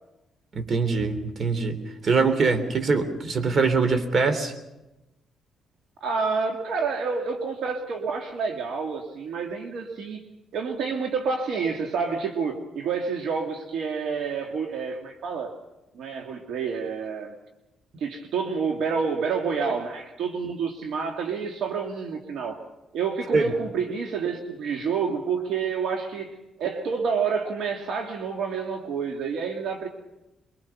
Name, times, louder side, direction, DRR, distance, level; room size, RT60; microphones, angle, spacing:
voice 1, 0.5-1.8 2.0-4.5 23.3-23.5, right 4 dB, 45° right, 9 dB, 3.3 m, -23 dB
voice 2, 6.0-10.2 10.5-15.5 15.9-17.4 18.0-22.6 22.9-29.9, right 5 dB, 75° right, 3 dB, 2.2 m, -28 dB
24.0 x 23.5 x 5.9 m, 0.97 s
cardioid pair, 90°, 0 cm